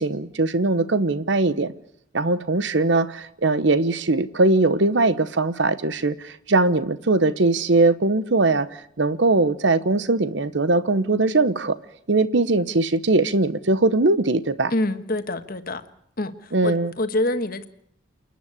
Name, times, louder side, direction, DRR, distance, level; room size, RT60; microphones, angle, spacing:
voice 1, 0.0-1.7 2.1-8.7 9.0-11.8 12.1-14.7 16.5-16.9, right 2 dB, 65° right, 14 dB, 1.0 m, -20 dB
voice 2, 14.7-15.8 16.2-17.7, left 1 dB, 50° left, 9 dB, 1.5 m, -26 dB
28.5 x 10.5 x 9.9 m, 0.71 s
head